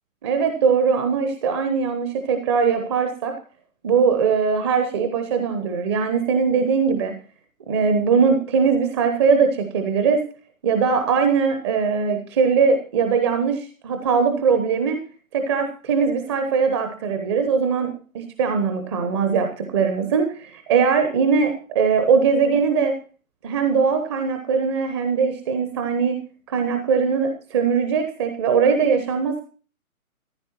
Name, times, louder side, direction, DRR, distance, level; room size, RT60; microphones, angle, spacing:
voice 1, 0.2-3.3 3.8-7.1 7.7-10.2 10.6-15.0 15.3-22.9 23.4-26.2 26.5-29.4, right 5 dB, 20° right, 6 dB, 1.0 m, -21 dB
14.0 x 11.5 x 4.4 m, 0.39 s
figure-of-eight pair, 135°, 43 cm